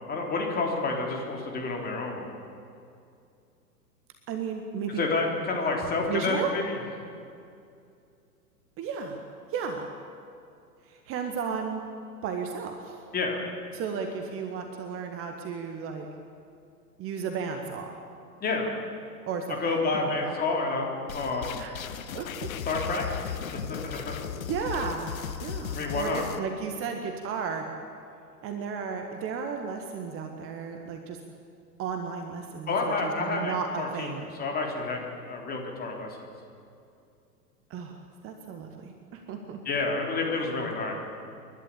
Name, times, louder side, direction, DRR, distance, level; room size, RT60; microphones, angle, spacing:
voice 1, 0.1-2.3 5.0-6.8 13.1-13.4 18.4-18.7 19.6-21.6 22.6-24.2 25.7-26.2 32.7-34.1 34.4-35.0 35.3-36.1 39.7-40.9, left 3 dB, 20° left, 0 dB, 3.7 m, -29 dB
voice 2, 4.3-5.0 6.1-6.5 8.8-9.2 9.5-9.9 10.8-11.8 12.2-13.0 13.7-16.1 17.0-18.0 19.3-20.3 21.2-21.8 22.1-22.5 24.5-25.1 25.4-27.6 28.4-31.2 31.8-32.7 33.0-34.3 37.7-38.0 38.2-39.6, right 6 dB, 25° right, 4 dB, 1.7 m, -34 dB
sound 1, 21.1-26.4, left 8 dB, 60° left, 1.2 m, -36 dB
29.5 x 11.5 x 8.5 m, 2.5 s
figure-of-eight pair, 105°, 47 cm